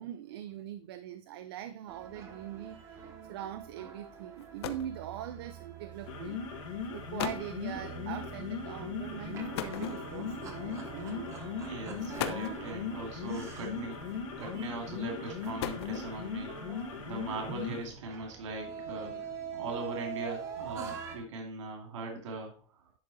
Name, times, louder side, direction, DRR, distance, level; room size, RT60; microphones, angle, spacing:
voice 1, 0.0-11.9 14.5-14.7, right 11 dB, 50° right, 0.4 m, -43 dB
sound 1, 1.9-21.2, right 7 dB, 20° right, 0.9 m, -45 dB
sound 2, 4.0-4.1 4.4-5.0 6.0-6.2 6.8-6.9 7.2-7.5 9.5-10.4 11.3-11.5 12.0-12.7 13.9-14.4 15.2-16.3, left 10 dB, 55° left, 0.7 m, -38 dB
sound 3, 5.9-17.9, left 6 dB, 90° left, 2.2 m, -39 dB
voice 2, 11.6-14.0 14.4-16.5 17.1-22.5, right 2 dB, 75° right, 2.5 m, -40 dB
10.5 x 3.9 x 4.0 m
supercardioid pair, 180°, 16 cm